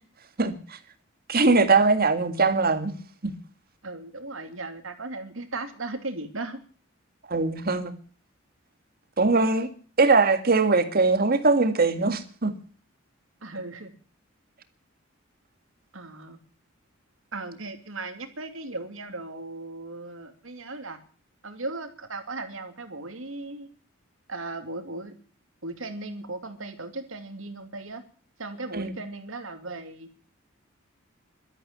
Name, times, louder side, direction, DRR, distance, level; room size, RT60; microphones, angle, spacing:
voice 1, 0.4-0.8 1.3-3.0 3.2-3.3 7.3-7.9 9.2-9.7 10.0-12.5 28.7-28.9, right 3 dB, 50° right, 1.9 m, -21 dB
voice 2, 3.8-6.6 13.4-13.9 15.9-16.4 17.3-21.0 21.4-23.7 24.3-25.1 25.6-28.0 28.4-30.1, right 2 dB, 75° right, 2.7 m, -37 dB
12.5 x 11.5 x 8.8 m
head